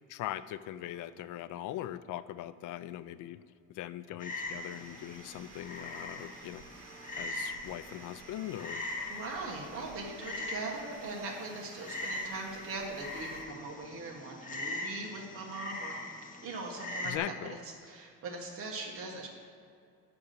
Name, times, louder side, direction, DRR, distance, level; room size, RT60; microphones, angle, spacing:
voice 1, 0.1-3.4 3.7-6.6 7.2-8.9 17.0-17.6, left 13 dB, 60° left, 14 dB, 0.4 m, -40 dB
Frog, 4.2-17.2, left 2 dB, 20° left, 0.8 m, -41 dB
sound 1, 4.2-13.5, right 5 dB, 80° right, 1.2 m, -53 dB
voice 2, 9.1-15.9 16.4-17.6 17.8-19.3, right 3 dB, 40° right, -1 dB, 1.3 m, -40 dB
9.1 x 5.9 x 6.7 m, 2.3 s
cardioid pair, 160°, 35 cm